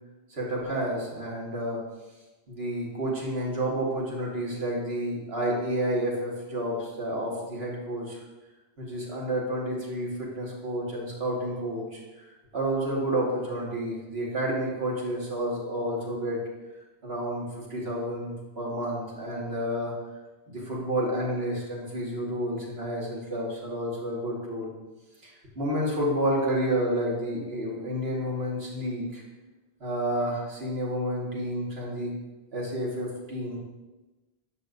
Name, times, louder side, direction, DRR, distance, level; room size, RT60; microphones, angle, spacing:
voice 1, 0.3-1.8 2.5-8.2 8.8-12.0 12.5-16.4 17.0-19.9 20.5-24.7 25.2-29.2 29.8-32.1 32.5-33.6, right 1 dB, 75° right, -4 dB, 2.0 m, -30 dB
9.6 x 6.5 x 2.6 m, 1.1 s
omnidirectional pair, 1.1 m